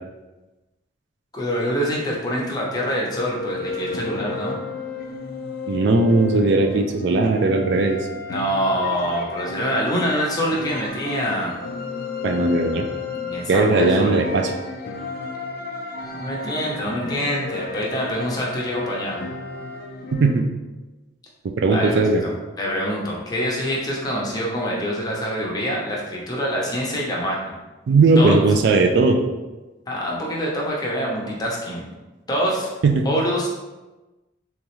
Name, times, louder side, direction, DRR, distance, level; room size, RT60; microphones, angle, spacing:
voice 1, 1.3-4.6 8.3-11.5 13.2-14.2 16.1-19.2 21.7-21.9 22.2-27.6 28.2-28.3 29.9-31.9 32.3-32.7 33.0-33.5, equal, 20° left, -4 dB, 0.7 m, -25 dB
sound 1, 3.1-20.4, left 3 dB, 50° left, 0.4 m, -33 dB
voice 2, 5.7-8.0 12.2-12.9 13.5-14.5 20.1-20.4 21.6-22.2 27.9-29.2 32.8-33.0, right 3 dB, 60° right, 4 dB, 0.3 m, -18 dB
3.6 x 3.0 x 3.0 m, 1.1 s
head